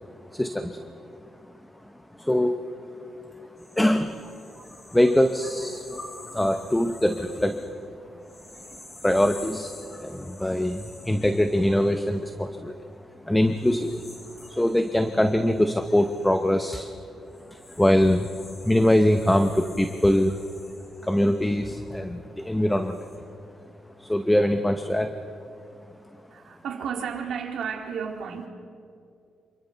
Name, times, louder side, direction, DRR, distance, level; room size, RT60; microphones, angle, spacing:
voice 1, 0.3-0.9 2.2-2.6 3.8-4.2 4.9-6.0 6.3-7.9 9.0-12.7 13.2-14.0 14.5-16.9 17.5-18.4 18.6-20.4 21.0-23.1 24.0-25.1, left 1 dB, 5° left, 7 dB, 0.8 m, -23 dB
sound 1, 3.6-12.8 13.4-22.2 22.7-23.2, left 1 dB, 30° left, 4.4 m, -47 dB
voice 2, 9.9-10.3 26.3-28.5, right 7 dB, 70° right, 2 dB, 2.4 m, -33 dB
28.0 x 24.5 x 4.0 m, 2.5 s
cardioid pair, 135°, 0 cm